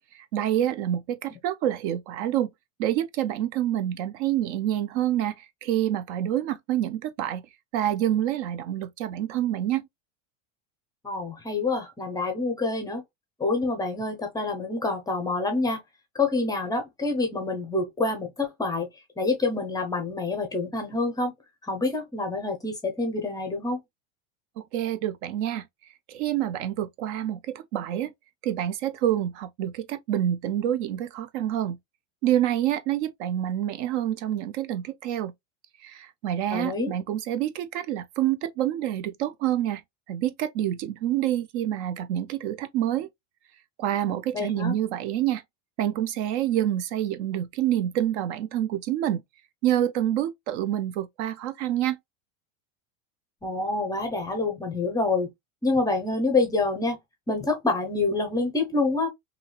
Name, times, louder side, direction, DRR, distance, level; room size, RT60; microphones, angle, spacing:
voice 1, 0.1-2.5 2.8-7.5 7.7-9.9 24.6-25.7 26.1-28.1 28.4-31.8 32.2-35.3 35.8-39.8 40.1-43.1 43.8-45.4 45.8-49.2 49.6-52.0, right 11 dB, 60° right, 0.5 m, -27 dB
voice 2, 11.0-13.0 13.4-15.8 16.1-18.9 19.2-21.3 21.6-23.8 36.5-36.9 44.3-44.7 53.4-55.3 55.6-57.0 57.3-59.1, left 3 dB, 10° left, 0.5 m, -27 dB
3.0 x 2.8 x 2.3 m
supercardioid pair, 145°, 40 cm